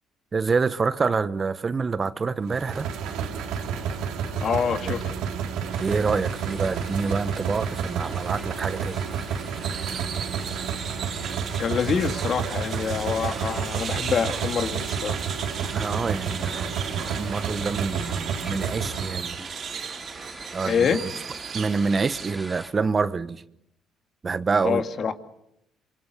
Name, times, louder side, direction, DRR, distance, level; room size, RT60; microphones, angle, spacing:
voice 1, 0.3-2.9 5.8-9.0 9.7-10.0 15.6-19.4 20.5-20.9 21.5-23.4 24.2-24.8, right 4 dB, 35° right, 1.0 m, -27 dB
sound 1, 2.5-19.4, right 7 dB, 75° right, 3.3 m, -30 dB
voice 2, 4.4-5.0 11.6-15.2 20.6-21.0 24.6-25.1, left 6 dB, 55° left, 2.2 m, -25 dB
sound 2, 5.7-22.7, right 1 dB, 10° right, 4.7 m, -42 dB
sound 3, 9.6-22.3, right 7 dB, 55° right, 2.0 m, -37 dB
26.5 x 24.0 x 6.8 m
supercardioid pair, 65°, 0 cm